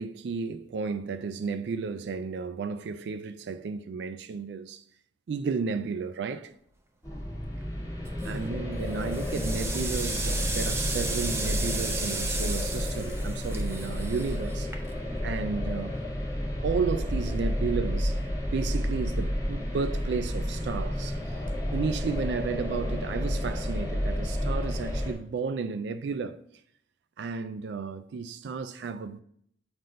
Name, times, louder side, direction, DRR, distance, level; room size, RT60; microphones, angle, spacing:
voice 1, 0.0-4.8 5.3-6.5 8.2-14.7 15.2-16.0 16.6-18.2 18.5-21.4 21.7-26.4 27.2-29.2, right 5 dB, 70° right, 0.3 m, -33 dB
sound 1, 7.0-25.1, equal, 20° left, 1.4 m, -31 dB
sound 2, 8.1-8.5 8.9-15.2, right 3 dB, 15° right, 0.6 m, -35 dB
7.6 x 2.6 x 5.1 m
head